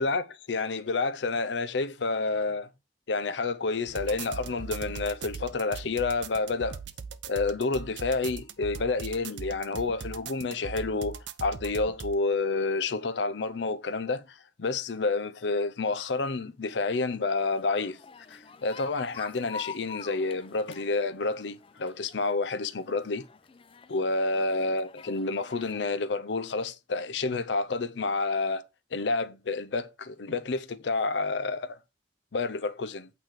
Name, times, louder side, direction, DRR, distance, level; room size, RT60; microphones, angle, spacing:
voice 1, 0.0-2.7 3.1-6.8 7.3-18.0 18.3-23.3 23.9-28.6 28.9-31.8 32.3-33.1, left 3 dB, 75° left, 0.6 m, -29 dB
sound 1, 3.9-12.1, right 5 dB, 80° right, 0.6 m, -40 dB
sound 2, 17.4-25.9, left 5 dB, 30° left, 0.5 m, -46 dB
8.6 x 3.2 x 5.8 m
head